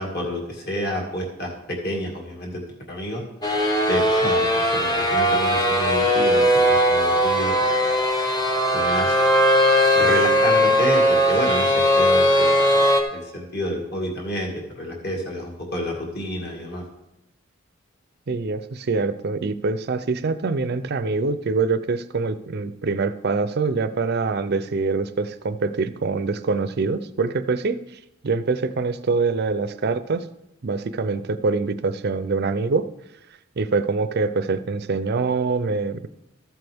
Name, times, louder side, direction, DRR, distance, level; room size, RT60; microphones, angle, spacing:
voice 1, 0.0-3.2 3.9-7.9 8.7-9.2 9.9-16.8, equal, 50° left, 0 dB, 2.2 m, -29 dB
sound 1, 3.4-13.0, equal, 20° left, 1.0 m, -19 dB
voice 2, 18.3-27.8 28.2-30.3 30.6-32.9 33.6-36.1, right 4 dB, 50° right, 13 dB, 0.5 m, -24 dB
14.0 x 7.8 x 3.5 m, 0.88 s
head